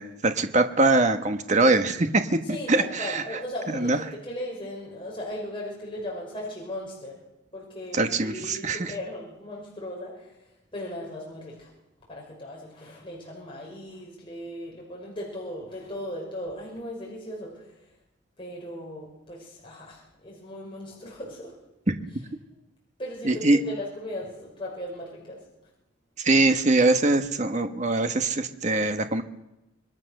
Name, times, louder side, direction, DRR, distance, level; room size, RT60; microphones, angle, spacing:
voice 1, 0.0-3.2 3.7-4.0 7.9-8.9 23.2-23.6 26.2-29.2, right 2 dB, 35° right, 7 dB, 1.3 m, -23 dB
voice 2, 2.5-7.2 7.5-10.4 10.7-11.7 12.1-17.7 18.4-21.5 23.0-25.4, left 1 dB, 25° left, -3 dB, 5.9 m, -37 dB
26.5 x 21.5 x 6.6 m, 0.93 s
head